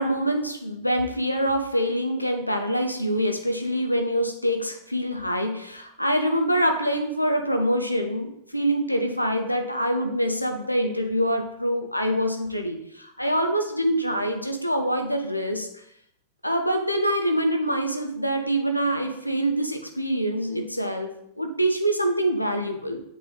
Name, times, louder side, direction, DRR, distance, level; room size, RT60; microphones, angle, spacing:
voice 1, 0.0-15.7 16.4-23.0, equal, 90° left, 4 dB, 0.6 m, -25 dB
7.8 x 3.3 x 3.8 m, 0.72 s
figure-of-eight pair, 90°, 0 cm